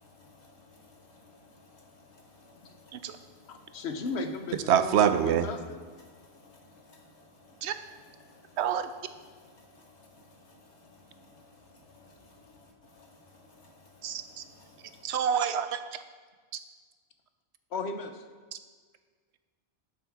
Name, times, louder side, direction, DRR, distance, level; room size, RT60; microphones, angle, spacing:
voice 1, 0.0-3.8 6.1-6.8 8.3-8.6 9.4-15.0, left 2 dB, 90° left, 0 dB, 1.8 m, -57 dB
voice 2, 3.5-5.8 17.7-18.1, left 3 dB, 75° left, 7 dB, 1.1 m, -36 dB
voice 3, 4.7-5.5 7.6-7.8 8.6-8.9 14.0-14.4 15.0-15.8, right 8 dB, 80° right, 11 dB, 0.9 m, -26 dB
12.0 x 6.9 x 3.6 m, 1.6 s
omnidirectional pair, 1.1 m